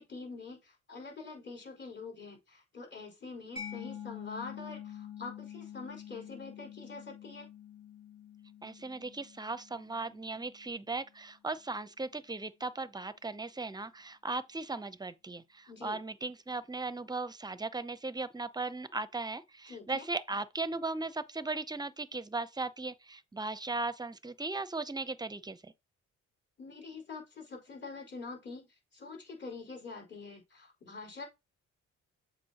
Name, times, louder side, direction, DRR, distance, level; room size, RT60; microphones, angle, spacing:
voice 1, 0.0-7.5 15.7-16.0 19.7-20.0 26.6-28.7 28.9-31.3, left 4 dB, 40° left, 4.4 m, -45 dB
Mallet percussion, 3.6-10.9, left 9 dB, 60° left, 3.1 m, -47 dB
voice 2, 8.6-25.7, right 3 dB, 15° right, 0.6 m, -37 dB
7.5 x 5.2 x 2.9 m
cardioid pair, 90°, 30 cm